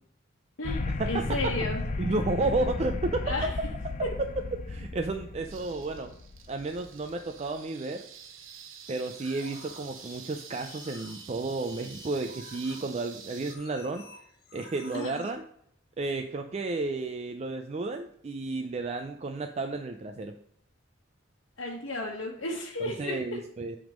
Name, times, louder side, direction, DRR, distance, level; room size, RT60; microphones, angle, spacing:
voice 1, 0.6-1.8 3.2-3.6 4.0-4.1 14.9-15.3 21.6-23.4, left 2 dB, 75° left, -4 dB, 1.2 m, -33 dB
sound 1, 0.6-7.1, left 3 dB, 40° left, 0.5 m, -34 dB
voice 2, 2.0-3.2 4.7-6.1 6.5-8.1 8.9-14.1 14.5-15.4 16.0-20.4 22.8-23.8, right 3 dB, 35° right, 5 dB, 0.4 m, -32 dB
sound 2, 5.4-13.6, right 8 dB, 85° right, 0.8 m, -48 dB
sound 3, 8.8-15.3, left 3 dB, 55° left, 1.2 m, -51 dB
7.8 x 3.6 x 5.1 m, 0.70 s
head